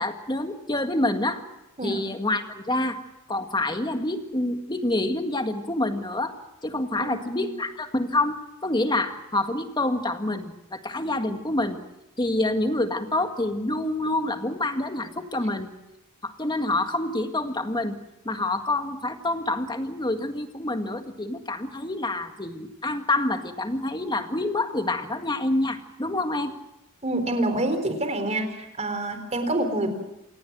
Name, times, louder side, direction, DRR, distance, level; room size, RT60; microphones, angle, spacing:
voice 1, 0.0-1.4 1.8-3.0 3.3-6.3 6.6-11.8 12.2-15.7 16.2-18.0 18.3-26.5, left 2 dB, 20° left, 6 dB, 1.9 m, -27 dB
voice 2, 7.0-7.5 27.0-29.9, right 1 dB, 30° right, 7 dB, 4.0 m, -27 dB
28.0 x 18.0 x 6.3 m, 0.95 s
head